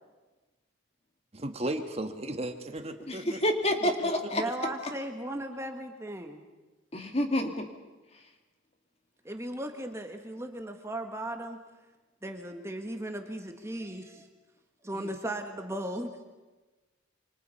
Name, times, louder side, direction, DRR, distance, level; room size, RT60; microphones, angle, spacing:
voice 1, 1.3-3.4 3.8-4.8, right 1 dB, 30° right, 6 dB, 1.5 m, -36 dB
voice 2, 3.1-4.4 6.9-7.7, left 1 dB, 30° left, 5 dB, 2.5 m, -28 dB
voice 3, 4.3-6.4 9.2-11.6 12.2-14.3 14.8-16.1, right 1 dB, 15° right, 5 dB, 1.7 m, -37 dB
28.5 x 26.0 x 5.6 m, 1.2 s
head